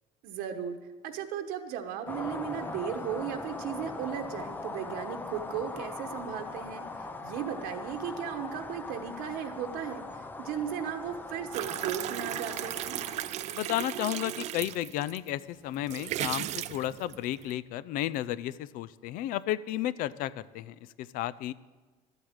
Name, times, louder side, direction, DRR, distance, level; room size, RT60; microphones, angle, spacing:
voice 1, 0.2-0.8 1.0-13.0, right 8 dB, 75° right, 5 dB, 1.1 m, -36 dB
sound 1, 2.1-13.6, left 3 dB, 10° left, 0.6 m, -41 dB
sound 2, 11.5-15.3 15.7-17.5, right 12 dB, 50° right, 0.5 m, -36 dB
voice 2, 13.5-21.5, left 13 dB, 65° left, 18 dB, 0.5 m, -33 dB
13.0 x 8.1 x 8.9 m, 1.3 s
cardioid pair, 175°, 15 cm